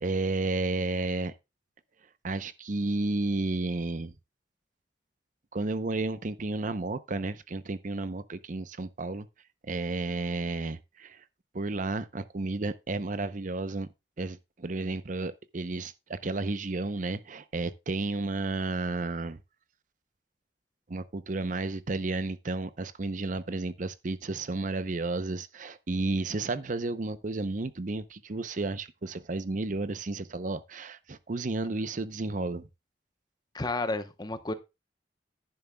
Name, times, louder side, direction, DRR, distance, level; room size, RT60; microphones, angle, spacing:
voice 1, 0.0-1.3 2.2-4.1 5.5-9.3 9.6-11.2 11.5-13.9 14.2-19.4 20.9-32.7, right 2 dB, 45° right, 0.7 m, -32 dB
voice 2, 33.5-34.5, left 2 dB, 25° left, 0.9 m, -31 dB
10.5 x 10.5 x 2.3 m
head